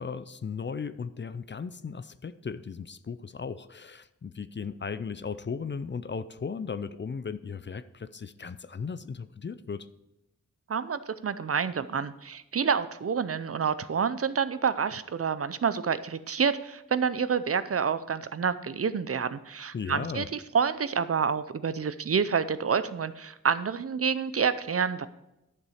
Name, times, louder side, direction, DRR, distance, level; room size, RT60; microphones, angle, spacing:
voice 1, 0.0-9.9 19.7-20.3, left 5 dB, 40° left, 13 dB, 0.5 m, -36 dB
voice 2, 10.7-25.1, right 6 dB, 50° right, 14 dB, 0.5 m, -28 dB
11.0 x 6.9 x 4.9 m, 0.91 s
wide cardioid pair, 110°, 30 cm